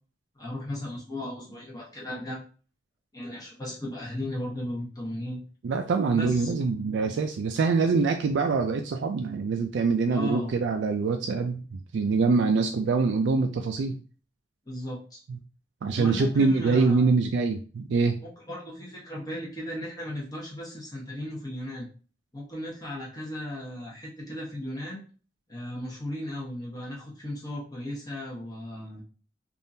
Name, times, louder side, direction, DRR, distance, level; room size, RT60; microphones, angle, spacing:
voice 1, 0.4-2.4 3.1-5.4 6.1-6.5 10.1-10.5 14.7-15.2 16.0-17.1 18.2-21.9 22.3-25.0 25.5-29.0, left 1 dB, 20° left, -4 dB, 1.0 m, -36 dB
voice 2, 5.6-13.9 15.8-18.2, right 4 dB, 80° right, 5 dB, 0.4 m, -24 dB
3.5 x 2.5 x 2.7 m, 0.37 s
head